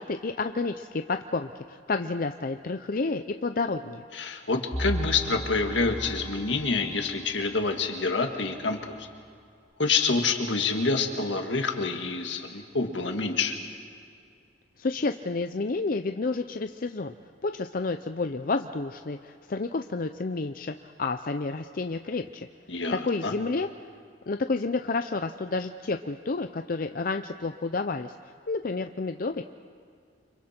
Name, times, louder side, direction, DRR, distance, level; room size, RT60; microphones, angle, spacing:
voice 1, 0.0-4.0 14.8-17.1 17.4-22.5 22.9-23.7 24.3-29.4, left 3 dB, 50° left, 7 dB, 0.6 m, -30 dB
voice 2, 4.1-9.1 9.8-13.5 22.7-23.3, left 4 dB, 85° left, 4 dB, 1.9 m, -27 dB
sound 1, 4.7-6.6, equal, 5° left, 2.8 m, -33 dB
30.0 x 25.5 x 4.4 m, 2.3 s
head